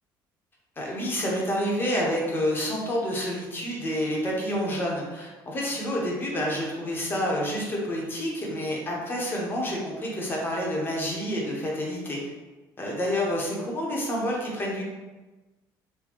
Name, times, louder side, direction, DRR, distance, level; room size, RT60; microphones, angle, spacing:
voice 1, 0.8-12.2 12.8-14.8, equal, 25° left, -3 dB, 0.9 m, -28 dB
4.1 x 2.2 x 3.0 m, 1.2 s
cardioid pair, 110°, 8 cm